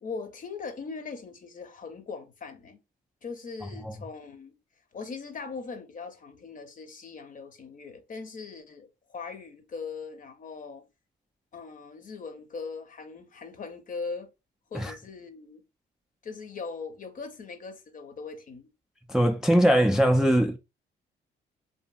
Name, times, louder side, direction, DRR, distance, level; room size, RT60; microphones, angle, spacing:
voice 1, 0.0-2.8 3.2-4.5 4.9-10.8 11.5-14.3 14.7-15.6 16.2-18.7, left 4 dB, 45° left, 0.7 m, -40 dB
voice 2, 19.1-20.6, equal, 5° right, 0.3 m, -21 dB
2.7 x 2.6 x 2.3 m
cardioid pair, 90°, 20 cm